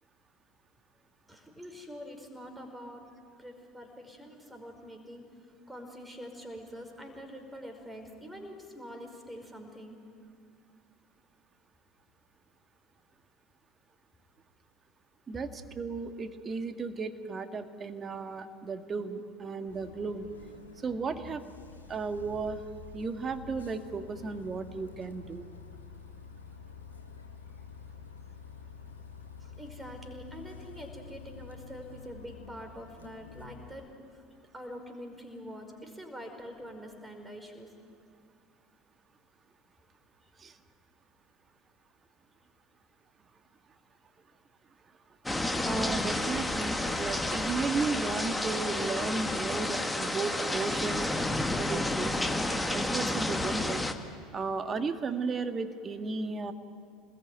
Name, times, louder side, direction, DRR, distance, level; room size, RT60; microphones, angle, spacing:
voice 1, 1.3-3.1 3.4-10.0 29.4-37.7, equal, 10° right, 4 dB, 5.2 m, -45 dB
voice 2, 15.3-20.3 20.8-21.4 21.9-22.6 22.9-25.5 40.4-40.5 45.6-51.2 51.5-53.8 54.3-56.5, right 4 dB, 30° right, 8 dB, 1.9 m, -34 dB
Bus, 19.7-33.7, left 6 dB, 80° left, 1.5 m, -48 dB
sound 1, 45.3-53.9, left 1 dB, 5° left, 1.8 m, -30 dB
27.0 x 20.5 x 9.4 m, 2.2 s
figure-of-eight pair, 70°, 0 cm